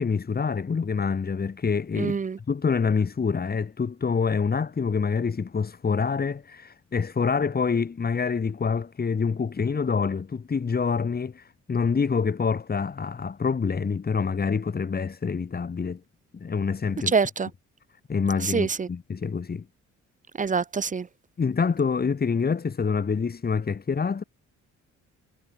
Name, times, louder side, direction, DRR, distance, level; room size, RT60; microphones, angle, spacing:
voice 1, 0.0-2.2 2.5-16.0 16.3-17.1 18.1-19.7 21.4-24.2, left 5 dB, 30° left, 1.8 m, -26 dB
voice 2, 2.0-2.4 17.1-17.5 18.4-18.9 20.4-21.1, right 5 dB, 25° right, 0.7 m, -25 dB
cardioid pair, 90°, 30 cm